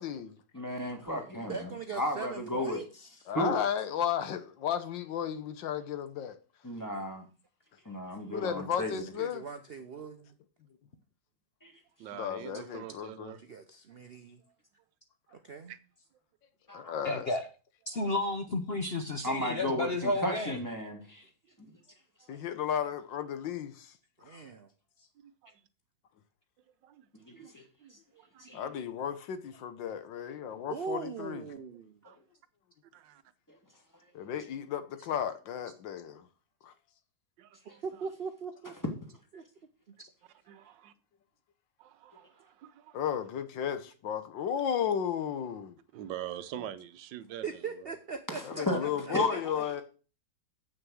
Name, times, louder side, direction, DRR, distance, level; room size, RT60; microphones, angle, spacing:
voice 1, 0.0-0.4 3.3-6.4 8.3-9.4 12.1-13.4 16.7-17.3 22.3-23.9 24.3-24.4 28.5-31.5 34.1-36.2 36.6-36.7 42.9-45.8 48.4-49.8, left 9 dB, 85° left, 1.7 m, -34 dB
voice 2, 0.5-2.8 3.3-3.6 6.6-7.3 7.9-9.0 11.6-11.7 16.7-17.0 19.2-21.3 21.6-21.7 27.1-28.0 28.4-28.7 33.5-33.6 37.7-37.8 48.3-49.5, left 1 dB, 10° left, 1.7 m, -34 dB
voice 3, 1.5-3.3 8.2-8.5 9.2-10.2 13.4-14.4 15.3-15.8 24.2-24.7 25.0-25.1 30.7-32.0 37.6-38.7 39.3-39.4 39.9-40.0 47.4-48.9 49.3-49.8, right 5 dB, 60° right, 0.6 m, -41 dB
voice 4, 12.0-13.4 15.7-15.8 22.2-22.4 25.2-25.6 26.8-27.5 27.8-28.7 32.0-32.2 32.9-33.2 34.3-34.4 37.4-37.8 40.5-40.9 41.8-43.0 45.9-47.9, right 11 dB, 85° right, 1.4 m, -45 dB
voice 5, 17.0-17.4 17.9-20.6 40.0-40.1, left 2 dB, 50° left, 0.8 m, -32 dB
7.9 x 6.3 x 6.2 m
omnidirectional pair, 2.0 m